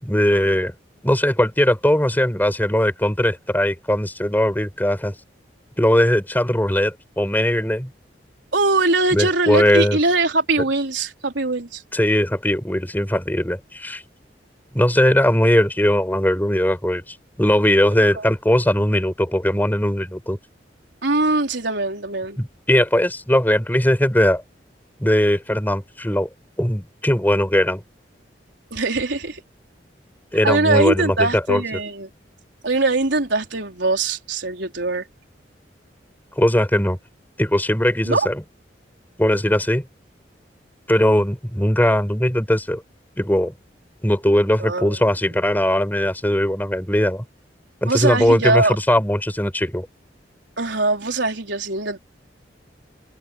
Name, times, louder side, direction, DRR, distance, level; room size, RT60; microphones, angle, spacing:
voice 1, 0.0-0.7 1.0-5.1 5.8-7.9 9.1-10.0 11.9-14.0 14.7-17.0 17.4-20.4 22.4-24.4 25.0-26.3 26.6-27.8 30.3-31.6 36.4-37.0 37.4-38.4 39.2-39.8 40.9-42.8 43.2-43.5 44.0-47.2 47.8-49.9, left 1 dB, 10° left, 4.8 m, -19 dB
voice 2, 8.5-11.8 18.1-18.2 21.0-22.4 28.7-29.4 30.4-32.1 32.6-35.1 38.0-38.3 44.6-45.0 47.9-48.8 50.6-52.0, right 2 dB, 85° right, 4.2 m, -21 dB
head